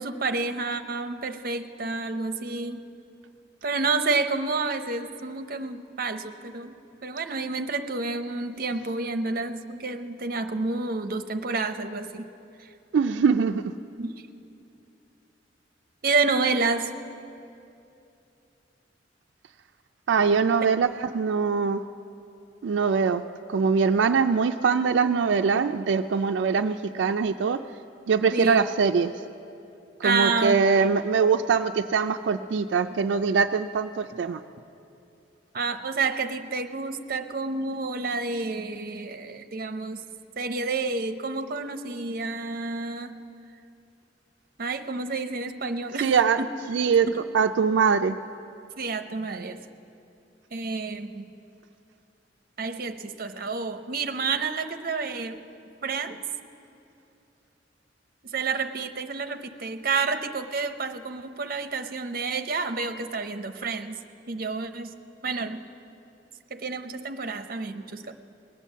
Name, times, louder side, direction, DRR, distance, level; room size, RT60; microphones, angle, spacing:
voice 1, 0.0-2.8 3.6-6.7 7.0-12.3 14.0-14.1 16.0-16.9 28.3-28.6 30.0-30.9 35.5-40.0 40.4-43.1 44.6-46.1 46.4-46.5 47.1-47.2 48.8-49.6 50.5-51.3 52.6-55.4 55.8-56.2 58.3-64.0 64.3-65.0 65.2-65.6 66.5-68.1, right 4 dB, 55° right, 8 dB, 0.7 m, -29 dB
voice 2, 12.9-13.6 20.1-21.8 22.6-23.2 23.5-27.6 28.1-29.1 30.0-34.4 46.0-46.4 46.7-47.1 47.3-48.2, right 5 dB, 80° right, 6 dB, 0.4 m, -22 dB
19.0 x 9.1 x 7.3 m, 2.7 s
head